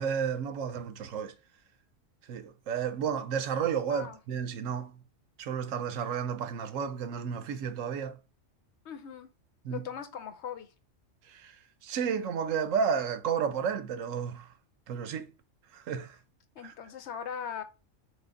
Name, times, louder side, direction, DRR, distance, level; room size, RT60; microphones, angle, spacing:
voice 1, 0.0-1.3 2.3-5.0 5.4-8.2 9.6-9.9 11.3-11.5 11.8-14.5 14.9-15.3 15.7-16.2 16.6-16.7, right 7 dB, 85° right, 1.0 m, -32 dB
voice 2, 8.8-9.3 9.7-10.7 16.6-17.6, left 7 dB, 65° left, 0.9 m, -39 dB
3.9 x 3.3 x 3.7 m
omnidirectional pair, 1.3 m